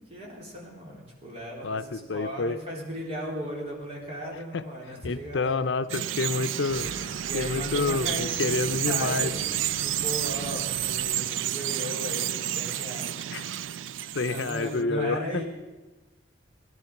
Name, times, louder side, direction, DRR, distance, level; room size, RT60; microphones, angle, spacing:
voice 1, 0.0-5.5 7.3-13.5 14.3-15.4, equal, 30° right, -3 dB, 3.7 m, -37 dB
voice 2, 1.6-2.6 4.5-4.6 5.0-6.9 7.3-9.3 13.3-13.4 14.1-15.4, left 3 dB, 70° left, 11 dB, 0.6 m, -28 dB
Bird vocalization bird call bird song, 5.9-14.8, right 11 dB, 90° right, 0.4 m, -30 dB
sound 1, 6.7-11.5, left 1 dB, 30° left, 6.0 m, -46 dB
17.5 x 11.0 x 5.9 m, 1.2 s
head